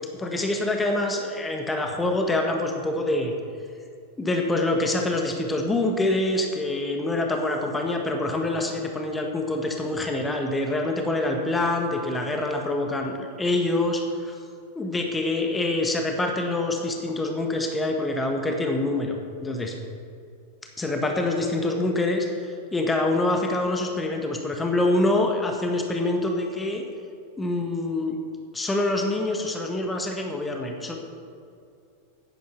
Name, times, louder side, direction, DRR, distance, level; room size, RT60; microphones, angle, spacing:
voice 1, 0.2-3.3 4.2-14.4 14.7-19.7 20.8-26.8 27.4-28.2 28.5-30.9, left 2 dB, 10° left, 3 dB, 1.4 m, -25 dB
10.5 x 9.8 x 5.8 m, 2.4 s
figure-of-eight pair, 90°, 0 cm